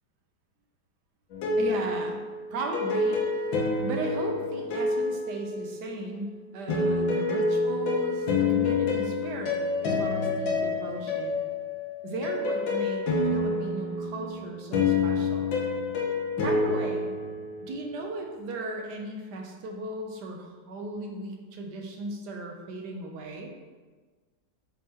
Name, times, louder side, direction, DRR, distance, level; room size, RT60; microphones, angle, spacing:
sound 1, 1.3-6.0 6.7-17.9, left 3 dB, 85° left, 1.7 m, -28 dB
voice 1, 1.6-3.2 3.8-11.4 12.0-15.6 16.4-17.1 17.6-23.5, right 2 dB, 70° right, 2 dB, 1.3 m, -36 dB
6.3 x 4.3 x 3.6 m, 1.4 s
omnidirectional pair, 2.0 m